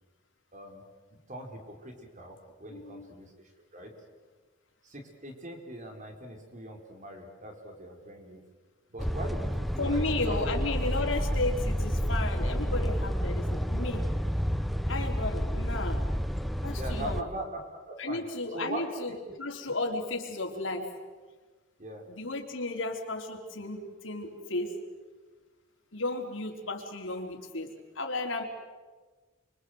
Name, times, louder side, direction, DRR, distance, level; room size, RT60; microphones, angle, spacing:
voice 1, 0.5-0.8 1.3-3.3 3.7-3.9 4.8-8.4 8.9-10.4 16.8-18.2 18.5-18.8 21.8-22.0, right 1 dB, 40° right, 3 dB, 4.9 m, -41 dB
voice 2, 2.7-3.1 9.8-14.1 14.9-16.0 16.6-17.3 18.0-20.9 22.1-24.8 25.9-28.4, left 2 dB, 80° left, 3 dB, 4.1 m, -34 dB
sound 1, 9.0-17.2, equal, ahead, 0.8 m, -30 dB
29.5 x 24.5 x 8.0 m, 1.3 s
head